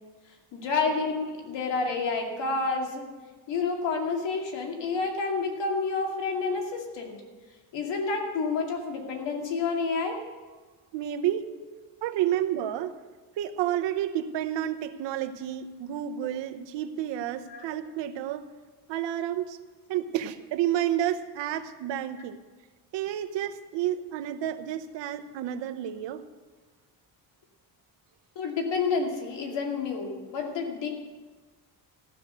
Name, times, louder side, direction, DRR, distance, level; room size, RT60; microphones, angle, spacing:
voice 1, 0.5-3.1 3.5-7.2 7.7-10.2 17.5-17.7 28.4-30.9, left 4 dB, 80° left, 2 dB, 2.5 m, -29 dB
voice 2, 10.9-11.5 12.0-13.0 13.4-18.5 18.9-19.6 19.9-22.4 22.9-26.2, right 11 dB, 85° right, 9 dB, 0.9 m, -30 dB
14.5 x 6.4 x 7.9 m, 1.3 s
cardioid pair, 130°, 42 cm